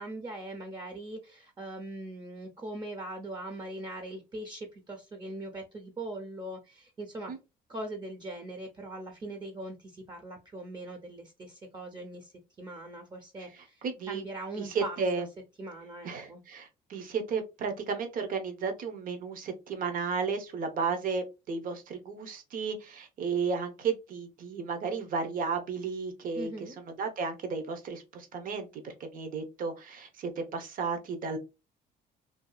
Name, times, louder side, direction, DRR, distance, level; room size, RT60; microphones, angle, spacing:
voice 1, 0.0-7.3 7.7-15.0 15.6-16.4 26.4-26.8, right 1 dB, 25° right, 0.6 m, -41 dB
voice 2, 13.5-14.2 14.6-15.3 16.0-31.4, right 5 dB, 55° right, 0.8 m, -33 dB
2.7 x 2.3 x 2.2 m
cardioid pair, 110°, 17 cm